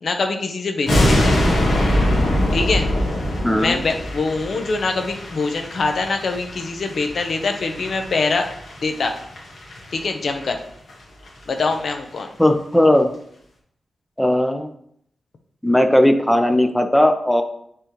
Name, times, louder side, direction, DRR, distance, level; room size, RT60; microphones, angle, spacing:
voice 1, 0.0-1.4 2.5-2.9 3.6-8.5 8.8-9.2 9.9-10.6 11.5-12.3, left 3 dB, 60° left, 5 dB, 0.8 m, -23 dB
sound 1, 0.9-10.0 10.3-10.5 10.9-11.0 11.3-11.4 11.6-11.9 12.2-12.3, left 1 dB, 85° left, 1.7 m, -23 dB
voice 2, 3.4-3.8 12.4-13.1 14.2-14.7 15.6-17.4, left 1 dB, 5° left, 6 dB, 0.6 m, -17 dB
9.5 x 3.8 x 3.0 m, 0.70 s
wide cardioid pair, 130°, 0 cm